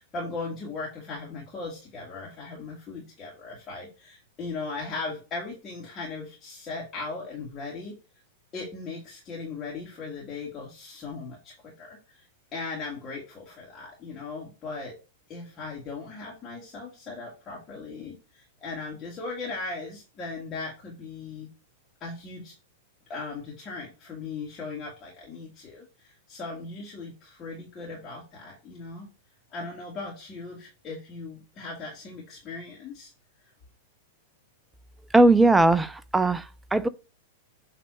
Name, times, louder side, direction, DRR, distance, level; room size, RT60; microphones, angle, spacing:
voice 1, 0.0-8.0 8.5-12.2 12.5-14.9 15.3-21.5 22.0-22.5 23.1-29.1 29.5-33.1, left 3 dB, 25° left, 2.1 m, -38 dB
voice 2, 35.1-36.4 36.7-36.9, right 2 dB, 5° right, 0.4 m, -19 dB
7.6 x 3.4 x 4.2 m
figure-of-eight pair, 95°, 0 cm